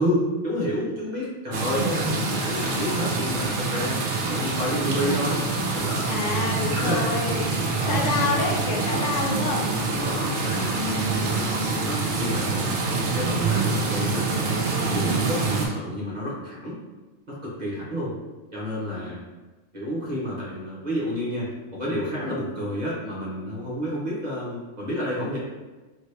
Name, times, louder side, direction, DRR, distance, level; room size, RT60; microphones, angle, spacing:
voice 1, 0.0-6.1 6.7-7.1 7.7-8.1 9.9-10.7 11.2-14.3 14.6-16.8 17.3-18.1 18.5-19.2 19.7-25.4, equal, 40° right, -7 dB, 0.8 m, -30 dB
sound 1, 1.5-15.7, right 3 dB, 65° right, 0.5 m, -26 dB
voice 2, 6.1-7.6 7.9-9.7 10.7-11.4 18.9-19.1, left 3 dB, 75° left, 0 dB, 0.9 m, -28 dB
2.7 x 2.7 x 3.2 m, 1.2 s
omnidirectional pair, 1.3 m